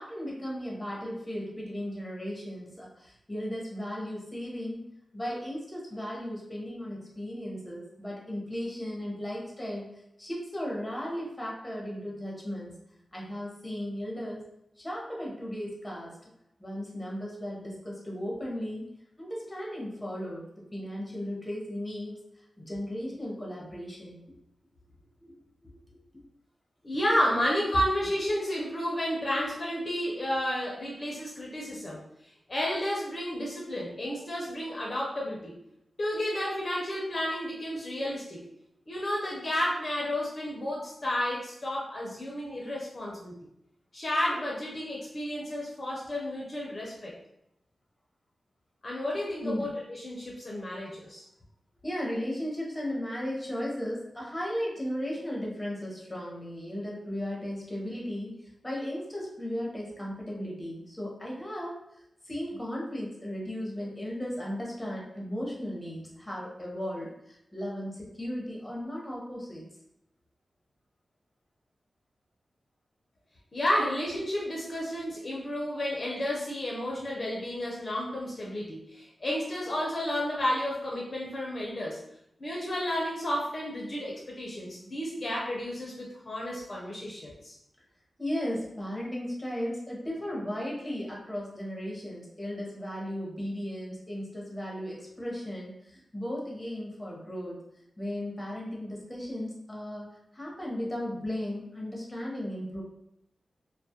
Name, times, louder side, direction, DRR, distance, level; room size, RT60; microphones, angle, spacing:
voice 1, 0.0-9.9 10.2-12.7 13.1-14.4 14.8-16.2 16.6-18.9 19.2-22.2 22.6-24.2 25.2-25.3 25.6-26.0 49.4-49.7 51.8-61.8 62.2-69.6 88.2-97.6 98.0-100.1 100.3-102.8, equal, 10° left, -4 dB, 0.8 m, -36 dB
voice 2, 26.8-32.0 32.5-35.6 36.0-38.4 38.9-43.3 43.9-47.1 48.8-51.2 73.5-82.0 82.4-87.5, left 1 dB, 45° left, -3 dB, 0.5 m, -31 dB
2.3 x 2.0 x 2.7 m, 0.80 s
wide cardioid pair, 75°, 0 cm